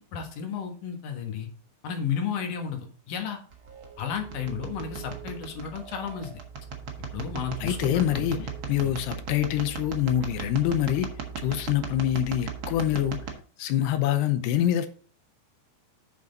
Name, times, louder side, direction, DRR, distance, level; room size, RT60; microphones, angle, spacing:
voice 1, 0.0-1.5 1.8-3.4 4.0-6.4 7.1-8.5 8.8-8.9, left 7 dB, 60° left, 2.9 m, -33 dB
sound 1, 3.5-13.3, right 6 dB, 70° right, 1.2 m, -37 dB
voice 2, 7.6-8.4 8.7-14.9, left 11 dB, 85° left, 2.8 m, -26 dB
9.0 x 6.1 x 4.0 m
omnidirectional pair, 4.6 m